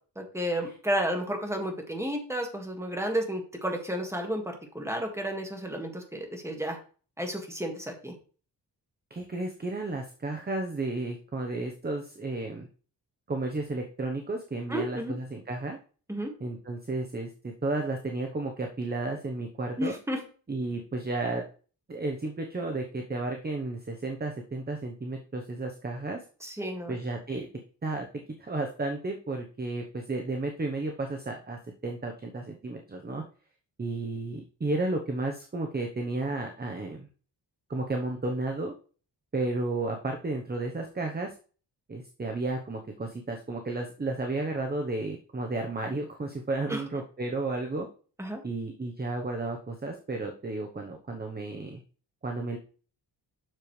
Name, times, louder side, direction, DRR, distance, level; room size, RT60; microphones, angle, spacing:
voice 1, 0.2-6.8 7.2-8.1 14.7-15.1 16.1-16.3 19.8-20.2 26.4-27.0 46.7-46.8 48.2-48.4, equal, 5° right, 3 dB, 1.9 m, -32 dB
voice 2, 9.1-12.7 13.3-15.8 16.4-17.3 17.6-19.9 20.5-21.4 21.9-26.2 26.9-27.5 27.8-28.1 28.4-33.2 33.8-37.1 37.7-38.7 39.3-41.3 41.9-47.9 48.4-51.8 52.2-52.6, right 2 dB, 25° right, 3 dB, 0.9 m, -32 dB
7.6 x 6.8 x 3.2 m, 0.39 s
wide cardioid pair, 105°, 42 cm